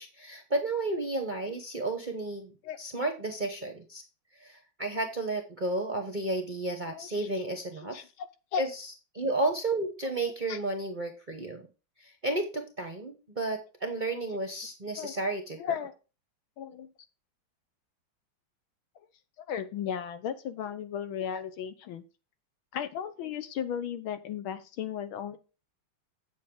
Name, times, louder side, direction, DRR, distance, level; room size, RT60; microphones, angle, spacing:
voice 1, 0.0-2.5 2.8-4.0 4.4-8.1 8.6-8.9 9.1-11.6 12.0-15.6, right 2 dB, 40° right, 5 dB, 0.7 m, -32 dB
voice 2, 6.8-7.3 7.9-8.6 10.5-10.6 15.0-15.1 15.6-15.9 16.6-16.9 19.5-22.0 22.7-25.4, left 8 dB, 80° left, 11 dB, 1.8 m, -35 dB
7.8 x 7.4 x 3.7 m, 0.32 s
omnidirectional pair, 2.2 m